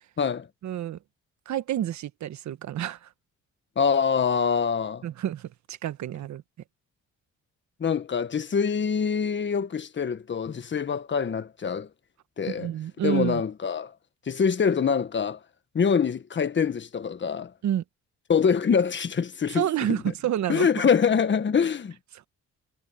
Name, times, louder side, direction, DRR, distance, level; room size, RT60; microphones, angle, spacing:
voice 1, 0.6-1.0 1.5-3.1 5.0-6.4 12.5-13.4 17.6-17.8 19.5-20.7, right 11 dB, 70° right, 1.3 m, -29 dB
voice 2, 3.8-5.0 7.8-11.9 12.4-12.7 13.0-13.9 14.3-15.4 15.7-17.5 18.3-19.6 20.5-21.9, left 6 dB, 40° left, 1.5 m, -24 dB
cardioid pair, 90°, 30 cm